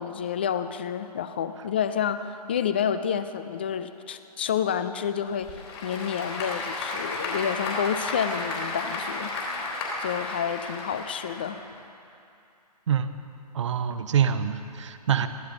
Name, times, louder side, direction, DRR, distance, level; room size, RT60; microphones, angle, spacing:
voice 1, 0.0-5.5 5.8-9.3 10.0-11.6, left 8 dB, 15° left, 11 dB, 0.3 m, -29 dB
Applause / Crowd, 5.3-11.8, left 2 dB, 40° left, 3.5 m, -33 dB
voice 2, 13.5-15.3, right 8 dB, 45° right, 10 dB, 0.9 m, -25 dB
22.0 x 15.0 x 3.8 m, 2.6 s
figure-of-eight pair, 140°, 21 cm